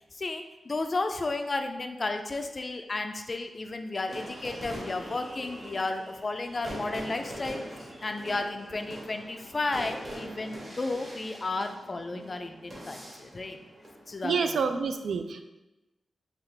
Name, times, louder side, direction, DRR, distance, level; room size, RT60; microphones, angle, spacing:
voice 1, 0.1-13.6 14.1-14.6, left 3 dB, 30° left, 6 dB, 0.3 m, -33 dB
sound 1, 4.1-14.2, equal, 40° right, 1.3 m, -43 dB
voice 2, 14.2-15.4, right 5 dB, 80° right, 7 dB, 0.3 m, -28 dB
5.5 x 2.4 x 3.3 m, 1.0 s
wide cardioid pair, 160°, 0 cm